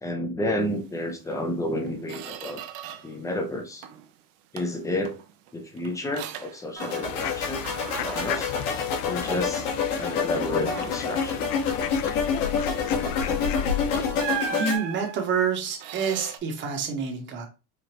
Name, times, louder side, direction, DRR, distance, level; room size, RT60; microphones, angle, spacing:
voice 1, 0.0-2.6 3.0-3.9 4.5-5.2 5.5-8.5 9.1-9.7 10.0-11.5, left 1 dB, 5° left, 4 dB, 0.5 m, -31 dB
Squeak, 1.3-1.4 1.8-3.2 3.5-4.1 4.6-7.4 7.6-9.5 9.9-10.1 10.5-11.2 13.3-13.5 14.2-16.4, right 7 dB, 55° right, 0.7 m, -38 dB
sound 1, 6.8-14.8, left 6 dB, 60° left, 1.7 m, -27 dB
sound 2, 7.0-14.1, left 11 dB, 85° left, 0.5 m, -36 dB
voice 2, 14.5-17.5, right 6 dB, 25° right, 2 dB, 1.0 m, -28 dB
5.0 x 2.5 x 2.9 m, 0.31 s
supercardioid pair, 130°, 44 cm